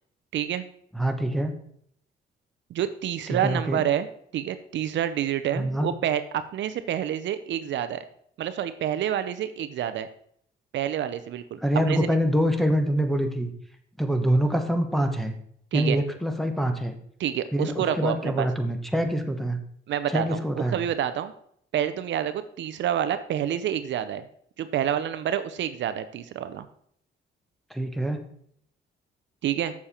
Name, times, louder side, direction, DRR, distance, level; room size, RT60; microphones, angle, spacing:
voice 1, 0.3-0.6 2.7-4.1 4.3-8.0 8.4-10.1 10.7-11.6 11.9-12.2 15.7-16.0 17.2-18.5 19.9-21.3 21.7-24.2 24.6-26.7 29.4-29.7, right 10 dB, 70° right, 11 dB, 0.6 m, -28 dB
voice 2, 0.9-1.5 3.4-3.8 5.5-5.9 11.6-13.5 14.0-15.3 15.7-16.9 17.5-19.6 20.1-20.8 27.7-28.2, equal, ahead, 4 dB, 1.1 m, -25 dB
7.0 x 6.8 x 4.3 m, 0.67 s
cardioid pair, 90°, 20 cm